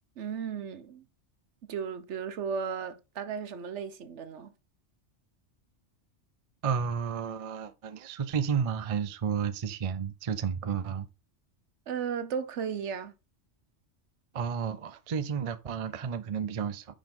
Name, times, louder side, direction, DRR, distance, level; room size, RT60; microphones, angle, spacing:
voice 1, 0.2-1.0 1.6-4.5 11.9-13.1, right 6 dB, 70° right, 1.1 m, -35 dB
voice 2, 6.6-11.1 14.3-16.9, right 7 dB, 40° right, 0.5 m, -32 dB
9.2 x 5.1 x 3.7 m
omnidirectional pair, 1.3 m